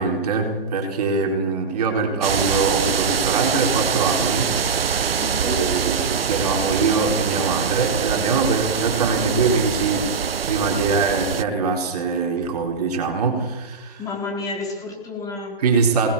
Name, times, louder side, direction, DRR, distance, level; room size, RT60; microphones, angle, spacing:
voice 1, 0.0-4.5 5.4-10.1 10.5-14.0 15.6-16.1, right 4 dB, 40° right, 2 dB, 4.5 m, -23 dB
sound 1, 2.2-11.4, right 7 dB, 70° right, 0.8 m, -24 dB
voice 2, 5.2-5.6 14.0-15.6, left 3 dB, 10° left, -1 dB, 4.1 m, -30 dB
26.0 x 20.0 x 7.0 m, 1.2 s
figure-of-eight pair, 150°, 31 cm